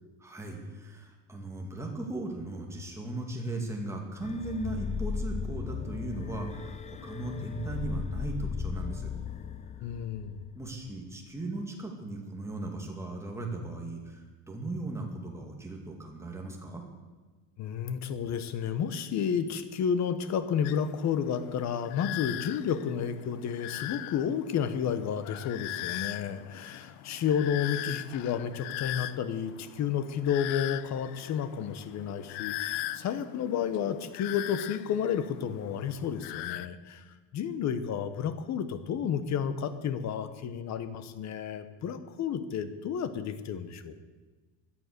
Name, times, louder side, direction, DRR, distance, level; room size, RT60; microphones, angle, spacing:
voice 1, 0.2-9.1 10.5-16.8, right 2 dB, 5° right, 0 dB, 2.4 m, -37 dB
sound 1, 4.2-10.9, left 6 dB, 15° left, 0.4 m, -36 dB
voice 2, 9.8-10.4 17.6-37.0 37.3-44.0, left 8 dB, 40° left, 11 dB, 1.2 m, -31 dB
sound 2, 20.6-36.7, left 15 dB, 85° left, 0.8 m, -40 dB
17.0 x 11.0 x 6.8 m, 1.3 s
cardioid pair, 160°, 44 cm